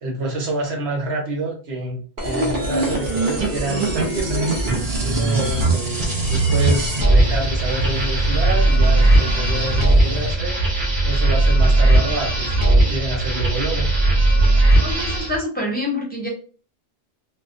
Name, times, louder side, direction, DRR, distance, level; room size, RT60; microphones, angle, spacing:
voice 1, 0.0-4.5 5.0-10.7 11.0-13.9, right 2 dB, 75° right, -1 dB, 1.1 m, -28 dB
sound 1, 2.2-15.4, right 2 dB, 55° right, 0.8 m, -18 dB
sound 2, 4.6-10.4, left 5 dB, 80° left, 0.9 m, -32 dB
voice 2, 14.8-16.3, left 1 dB, 10° left, -3 dB, 0.6 m, -26 dB
2.3 x 2.1 x 2.5 m, 0.39 s
omnidirectional pair, 1.1 m